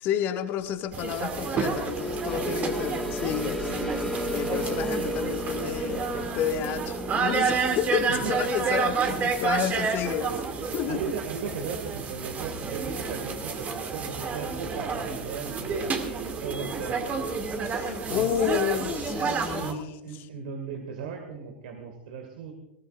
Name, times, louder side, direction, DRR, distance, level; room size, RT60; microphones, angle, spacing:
voice 1, 0.0-3.7 4.3-11.1 17.6-20.0, left 9 dB, 40° left, 6 dB, 1.7 m, -30 dB
sound 1, 0.9-10.0, equal, 10° left, 1.8 m, -35 dB
sound 2, 0.9-19.7, right 5 dB, 25° right, 2.5 m, -30 dB
voice 2, 4.4-4.8 8.1-8.4 8.8-9.4 10.9-17.1 18.1-18.4 19.4-22.5, right 6 dB, 60° right, 4 dB, 2.2 m, -37 dB
20.5 x 18.5 x 2.5 m, 0.91 s
figure-of-eight pair, 90°, 6 cm